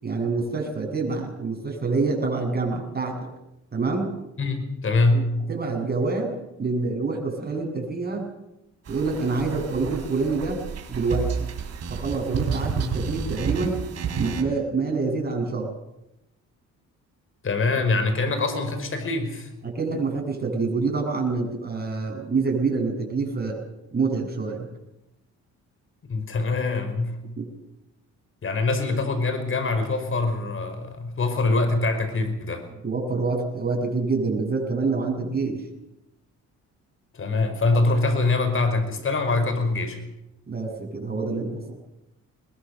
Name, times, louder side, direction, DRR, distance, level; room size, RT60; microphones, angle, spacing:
voice 1, 0.0-3.3 3.7-4.1 5.1-5.2 5.5-8.2 8.9-10.6 10.9-11.5 11.9-13.8 14.1-15.7 19.6-23.6 23.9-24.7 27.4-27.5 32.8-35.6 40.5-41.6, right 4 dB, 30° right, 1 dB, 7.8 m, -26 dB
voice 2, 4.4-5.3 17.4-19.5 26.1-27.2 28.4-32.6 37.1-40.0, left 3 dB, 45° left, 7 dB, 5.3 m, -24 dB
sound 1, 8.9-14.4, right 5 dB, 55° right, 4.4 m, -30 dB
22.0 x 21.0 x 6.8 m, 0.89 s
cardioid pair, 90°, 30 cm